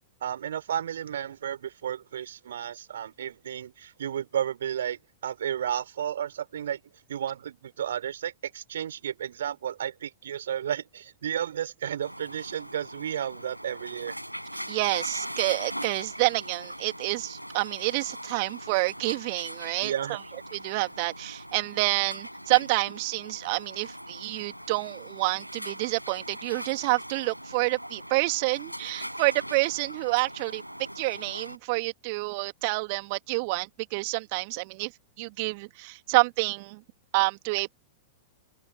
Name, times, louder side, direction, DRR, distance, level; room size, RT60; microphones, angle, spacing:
voice 1, 0.2-6.8 7.1-14.2 19.8-20.2, right 9 dB, 60° right, 3.5 m, -32 dB
sound 1, 12.0-31.6, equal, 90° right, 7.6 m, -40 dB
voice 2, 14.7-20.2 20.5-30.6 31.0-34.9 35.2-36.8 37.1-37.7, right 28 dB, 45° right, 2.5 m, -28 dB
open air
figure-of-eight pair, 100°, 0 cm